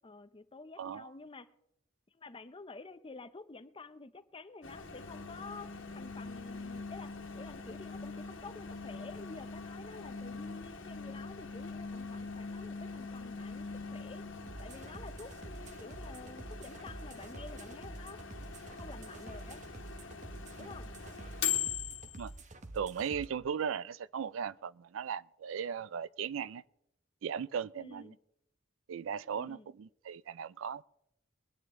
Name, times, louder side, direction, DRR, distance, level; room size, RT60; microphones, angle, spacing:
voice 1, 0.0-1.5 2.1-13.7 13.9-14.2 14.6-18.3 18.7-19.6 20.6-20.9 27.8-28.2 29.3-29.7, left 3 dB, 25° left, 0.6 m, -50 dB
voice 2, 0.8-1.1 20.6-20.7 22.2-22.3 22.7-26.6 27.2-28.1 28.9-30.8, right 7 dB, 75° right, 0.4 m, -37 dB
Microwave oven, 4.6-22.4, left 7 dB, 65° left, 1.4 m, -44 dB
sound 1, 5.0-14.7, left 4 dB, 90° left, 0.6 m, -45 dB
sound 2, 14.5-23.3, right 2 dB, 40° right, 0.9 m, -48 dB
22.0 x 9.3 x 3.6 m
head